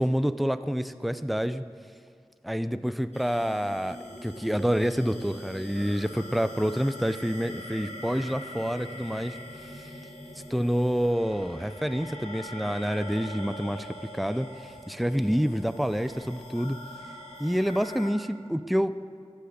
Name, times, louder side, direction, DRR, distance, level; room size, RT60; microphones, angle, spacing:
voice 1, 0.0-1.6 2.4-9.4 10.5-13.9 14.1-16.8 17.4-19.0, equal, ahead, 12 dB, 0.5 m, -28 dB
sound 1, 3.1-18.1, left 1 dB, 85° left, 2.0 m, -43 dB
13.5 x 10.5 x 6.6 m, 2.1 s
wide cardioid pair, 45°, 11 cm